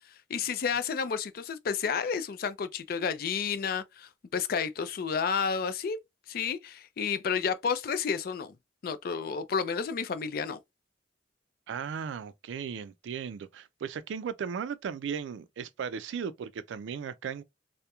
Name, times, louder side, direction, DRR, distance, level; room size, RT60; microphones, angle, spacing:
voice 1, 0.0-6.0 6.3-8.5 8.8-10.6, left 6 dB, 55° left, 0.4 m, -31 dB
voice 2, 11.7-17.4, right 7 dB, 85° right, 0.3 m, -36 dB
2.8 x 2.0 x 2.3 m
head